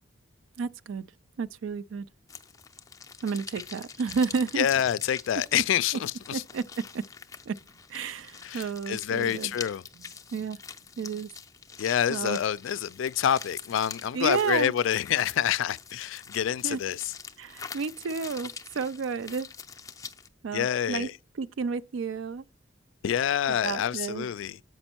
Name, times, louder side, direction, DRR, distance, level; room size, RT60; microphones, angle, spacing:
voice 1, 0.6-1.0 1.4-2.0 3.2-4.7 6.3-6.6 6.9-7.0 7.5-7.6 7.9-9.5 10.3-10.6 11.0-11.3 12.1-12.4 14.1-14.7 16.6-16.8 17.4-19.5 20.4-21.1 21.4-22.4 23.5-24.3, right 5 dB, 75° right, 0.4 m, -31 dB
sound 1, 2.3-20.3, left 6 dB, 15° left, 0.5 m, -45 dB
voice 2, 4.6-6.4 8.4-9.8 11.8-17.1 20.5-21.1 23.0-24.6, left 9 dB, 75° left, 0.3 m, -27 dB
7.9 x 5.3 x 4.4 m
head